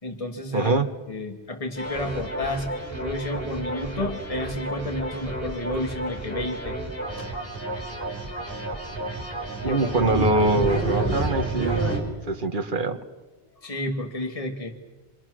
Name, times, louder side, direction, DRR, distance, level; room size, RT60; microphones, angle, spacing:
voice 1, 0.0-0.8 1.1-2.7 3.0-6.8 7.2-7.3 9.6-9.9 10.3-10.4 13.6-14.8, left 1 dB, 30° left, 3 dB, 2.1 m, -31 dB
voice 2, 0.5-0.9 9.6-11.9 12.3-13.0, right 2 dB, 50° right, 7 dB, 1.6 m, -23 dB
sound 1, 1.8-12.0, right 2 dB, 10° left, 4.8 m, -30 dB
29.5 x 25.5 x 6.4 m, 1.3 s
omnidirectional pair, 1.1 m